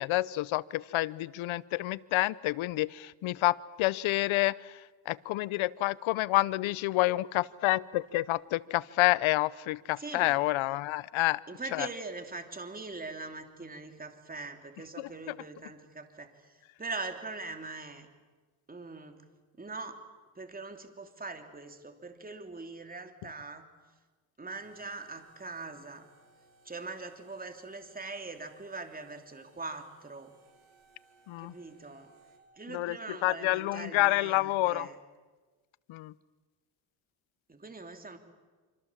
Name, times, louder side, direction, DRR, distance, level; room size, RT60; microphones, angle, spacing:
voice 1, 0.0-4.8 5.1-11.4 11.7-11.9 15.0-15.1 31.3-31.5 32.7-34.9 35.9-36.1, left 18 dB, 80° left, 20 dB, 0.9 m, -28 dB
voice 2, 10.0-10.4 11.5-18.1 18.7-19.2 19.6-20.0 20.3-23.7 24.4-26.1 26.6-30.3 31.4-32.1 32.5-35.0 37.5-38.2, right 3 dB, 20° right, 6 dB, 3.1 m, -42 dB
sound 1, 24.5-32.4, right 3 dB, 80° right, 4.7 m, -63 dB
26.5 x 26.5 x 7.4 m, 1.3 s
cardioid pair, 95°, 48 cm